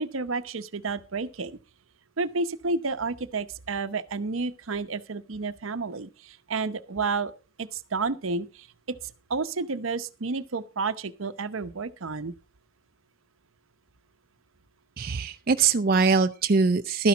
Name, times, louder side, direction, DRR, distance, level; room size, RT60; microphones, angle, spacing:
voice 1, 0.0-1.6 2.2-7.3 7.6-12.3, right 4 dB, 80° right, 0.8 m, -31 dB
voice 2, 15.0-17.1, right 4 dB, 45° right, 0.5 m, -22 dB
12.5 x 10.5 x 4.0 m
head